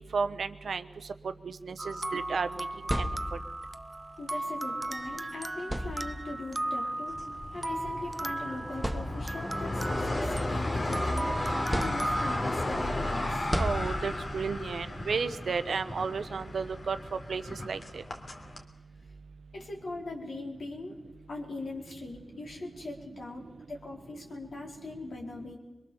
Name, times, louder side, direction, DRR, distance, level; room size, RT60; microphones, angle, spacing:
voice 1, 0.1-0.9 1.4-2.7 2.9-3.0 13.6-17.0 17.3-18.0, right 5 dB, 85° right, 11 dB, 1.0 m, -32 dB
sound 1, 1.8-12.4, right 1 dB, 30° right, 0.7 m, -36 dB
sound 2, 2.6-3.7 5.0-5.1 5.6-6.5 7.6-7.7 8.3-8.4 8.8-9.6 10.1-11.1 11.7-12.5 13.5-14.4, equal, 5° right, 1.9 m, -34 dB
voice 2, 4.2-7.2 7.5-11.4 11.7-13.4 19.5-21.0 21.3-23.4 23.7-25.6, left 2 dB, 80° left, 0 dB, 4.4 m, -40 dB
sound 3, 7.1-18.6, left 1 dB, 55° left, 3.2 m, -34 dB
23.0 x 22.5 x 7.2 m, 1.2 s
cardioid pair, 40°, 0 cm